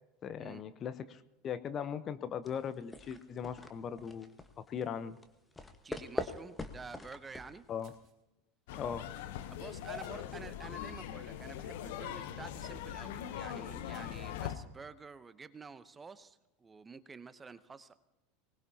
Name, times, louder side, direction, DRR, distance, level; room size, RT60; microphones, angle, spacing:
voice 1, 0.2-5.2 7.7-7.9 8.7-9.1, left 7 dB, 35° left, 12 dB, 0.8 m, -39 dB
sound 1, 2.4-8.1, left 2 dB, 15° left, 1.3 m, -44 dB
voice 2, 5.8-7.6 9.5-17.9, right 4 dB, 20° right, 14 dB, 0.8 m, -50 dB
breaking glass (multi), 7.8-8.2 9.1-9.2 10.0-10.4 13.9-14.2, right 8 dB, 35° right, 3.9 m, -66 dB
sound 2, 8.7-14.6, left 10 dB, 65° left, 0.9 m, -41 dB
24.0 x 19.5 x 2.9 m, 0.96 s
figure-of-eight pair, 80°, 0 cm